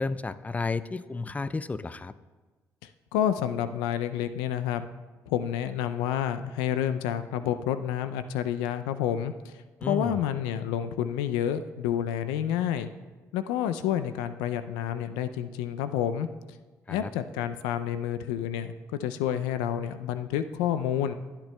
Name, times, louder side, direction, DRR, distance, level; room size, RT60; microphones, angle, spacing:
voice 1, 0.0-2.1 9.8-10.2 16.9-17.1, left 3 dB, 20° left, 15 dB, 0.4 m, -32 dB
voice 2, 3.1-4.9 5.3-9.5 9.9-12.9 13.3-16.3 16.9-21.1, left 10 dB, 90° left, 11 dB, 0.4 m, -29 dB
18.0 x 8.9 x 2.2 m, 1.3 s
supercardioid pair, 60°, 7 cm